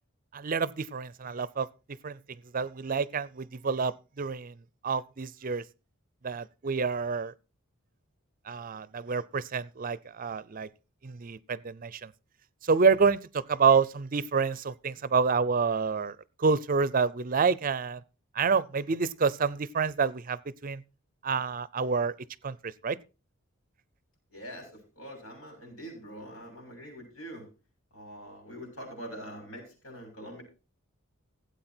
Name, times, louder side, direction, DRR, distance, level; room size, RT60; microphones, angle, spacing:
voice 1, 0.3-1.7 2.0-2.2 2.5-4.5 4.8-5.6 6.2-7.3 8.5-10.7 11.0-12.1 12.6-18.0 18.4-20.8 21.2-22.1 22.4-23.0, right 5 dB, 40° right, 0.5 m, -28 dB
voice 2, 24.3-27.5 27.9-30.4, equal, 85° left, 7.0 m, -44 dB
16.0 x 8.3 x 4.4 m
head